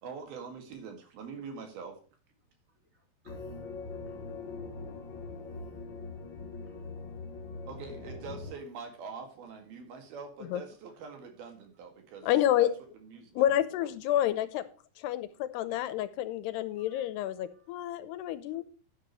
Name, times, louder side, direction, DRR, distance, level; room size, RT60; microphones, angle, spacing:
voice 1, 0.0-2.0 7.7-12.3 12.6-13.9 15.7-15.8, right 5 dB, 65° right, 5 dB, 3.8 m, -44 dB
voice 2, 2.9-3.6 4.2-4.3 5.4-5.5 6.6-7.0 16.7-17.6, right 2 dB, 20° right, 1 dB, 4.3 m, -64 dB
sound 1, 3.3-8.5, left 3 dB, 55° left, 1.3 m, -42 dB
voice 3, 12.2-12.7 13.4-14.6 15.0-18.6, left 12 dB, 80° left, 14 dB, 2.7 m, -29 dB
11.5 x 10.5 x 3.1 m, 0.39 s
omnidirectional pair, 4.9 m